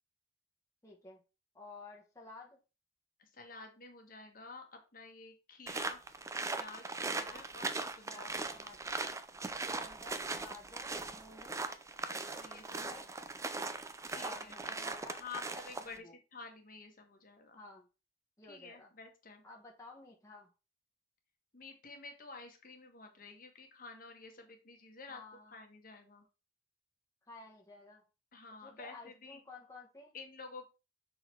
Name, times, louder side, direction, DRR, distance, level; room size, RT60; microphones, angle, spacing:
voice 1, 0.8-1.2 1.5-2.6 7.1-7.4 8.1-9.1 9.6-11.7 12.7-13.0 14.1-15.3 15.8-16.1 17.6-17.9 18.4-18.9 19.4-20.5 25.1-25.6 27.3-28.0 28.6-30.1, left 2 dB, 15° left, 1.1 m, -53 dB
voice 2, 3.2-6.1 6.6-8.3 12.1-13.0 14.1-17.6 18.4-19.4 21.5-25.2 25.5-26.3 28.3-29.4 30.1-30.6, left 4 dB, 50° left, 1.3 m, -51 dB
sound 1, 5.7-16.0, right 3 dB, 15° right, 0.5 m, -39 dB
6.1 x 3.8 x 4.4 m
head